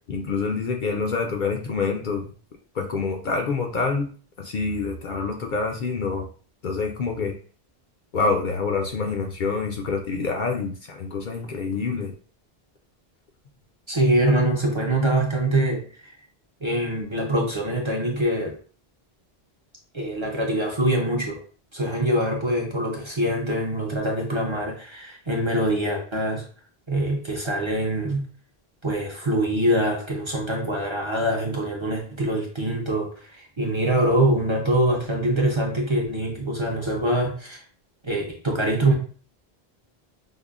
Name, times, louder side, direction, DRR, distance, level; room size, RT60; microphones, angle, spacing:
voice 1, 0.1-2.2 2.8-4.1 4.4-6.3 6.6-7.3 8.1-12.1, left 4 dB, 60° left, 2 dB, 0.6 m, -26 dB
voice 2, 13.9-16.1 16.6-18.6 19.9-21.4 21.7-26.4 26.9-28.3 28.8-37.6 38.0-38.9, right 1 dB, 35° right, -1 dB, 0.6 m, -24 dB
5.2 x 2.1 x 2.4 m, 0.41 s
omnidirectional pair, 1.0 m